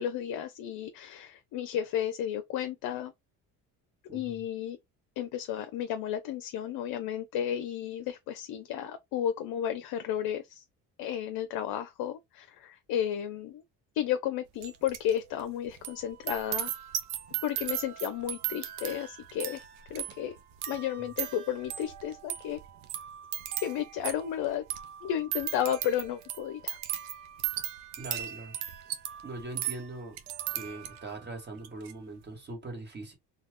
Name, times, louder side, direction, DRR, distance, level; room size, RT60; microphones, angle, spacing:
voice 1, 0.0-3.1 4.1-4.8 5.2-10.6 11.0-13.6 13.9-16.7 17.4-19.6 19.9-20.4 20.7-22.6 23.6-24.6 25.0-26.8, left 10 dB, 70° left, 0.6 m, -33 dB
voice 2, 4.1-4.4 21.0-21.1 28.0-28.5 29.2-30.2 30.5-33.1, right 2 dB, 25° right, 1.5 m, -41 dB
sound 1, 14.6-15.1 15.4-31.2 31.6-31.9, right 12 dB, 80° right, 0.7 m, -37 dB
2.4 x 2.3 x 3.5 m
cardioid pair, 95°, 38 cm